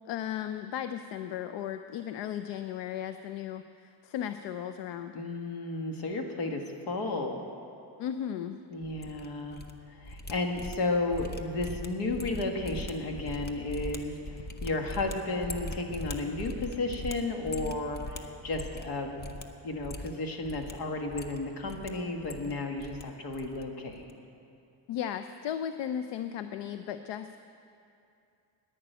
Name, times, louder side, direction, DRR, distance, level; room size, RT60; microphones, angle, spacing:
voice 1, 0.1-5.2 8.0-8.6 24.9-27.4, left 9 dB, 85° left, 10 dB, 0.6 m, -36 dB
voice 2, 5.1-7.4 8.7-9.6 9.9-19.2 19.6-24.1, left 2 dB, 70° left, 3 dB, 1.7 m, -33 dB
sound 1, 8.8-9.7 10.0-18.9 19.2-19.4 19.8-20.7 21.1-21.9 22.2-23.0 23.3-23.6 23.9-24.1, left 1 dB, 25° left, 0.6 m, -41 dB
11.0 x 10.0 x 9.2 m, 2.6 s
cardioid pair, 175°, 41 cm